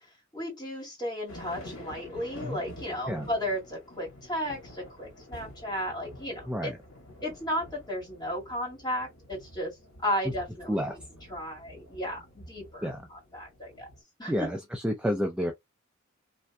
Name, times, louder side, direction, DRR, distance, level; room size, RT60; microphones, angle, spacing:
voice 1, 0.3-6.7 7.2-9.8 10.0-11.0 11.3-13.9 14.2-14.5, equal, 20° left, 2.0 m, -34 dB
sound 1, 1.3-14.0, left 1 dB, 80° left, 1.4 m, -48 dB
voice 2, 6.5-6.8 10.7-11.0 12.8-13.0 14.3-15.5, equal, 5° right, 0.4 m, -30 dB
3.3 x 2.6 x 2.2 m
head